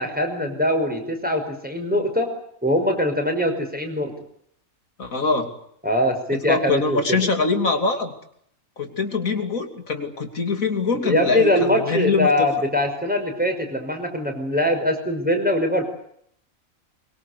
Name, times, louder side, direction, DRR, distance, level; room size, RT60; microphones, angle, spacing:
voice 1, 0.0-2.3 2.6-4.1 5.8-7.2 11.0-15.8, left 1 dB, 5° right, 3 dB, 5.7 m, -22 dB
voice 2, 5.0-5.5 6.5-8.1 8.8-12.5, left 4 dB, 85° left, 5 dB, 3.3 m, -23 dB
24.0 x 23.0 x 8.3 m, 0.68 s
omnidirectional pair, 1.4 m